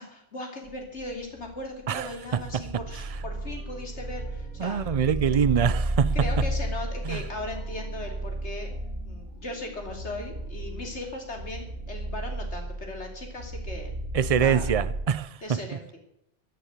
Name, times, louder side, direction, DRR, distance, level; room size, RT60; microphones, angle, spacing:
voice 1, 0.0-4.8 5.1-5.5 6.1-8.7 9.0-13.9 14.3-14.7 15.4-16.0, left 2 dB, 90° left, 3.4 m, -38 dB
sound 1, 0.7-15.0, right 1 dB, 80° right, 2.1 m, -33 dB
voice 2, 1.9-2.8 4.6-6.1 7.1-7.2 14.1-15.6, right 7 dB, 40° right, 0.6 m, -25 dB
sound 2, 2.0-11.0, left 2 dB, 20° left, 4.1 m, -55 dB
sound 3, 3.2-9.0, equal, 55° left, 4.9 m, -56 dB
12.5 x 11.0 x 8.1 m
omnidirectional pair, 1.1 m